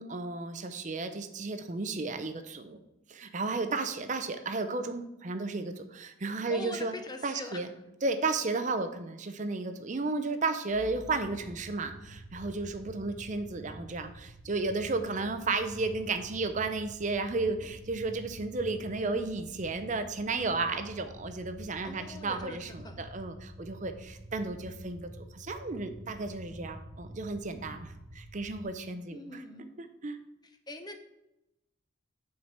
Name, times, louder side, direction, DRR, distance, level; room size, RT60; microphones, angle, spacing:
voice 1, 0.0-2.8 3.1-6.9 7.2-7.7 8.0-29.4 29.8-30.2, right 3 dB, 40° right, 8 dB, 0.6 m, -33 dB
voice 2, 6.5-7.7 21.8-23.0 29.1-29.8 30.4-31.0, left 2 dB, 20° left, 7 dB, 0.7 m, -43 dB
sound 1, 10.7-28.6, equal, 80° right, 1.1 m, -48 dB
6.4 x 4.6 x 6.6 m, 0.92 s
head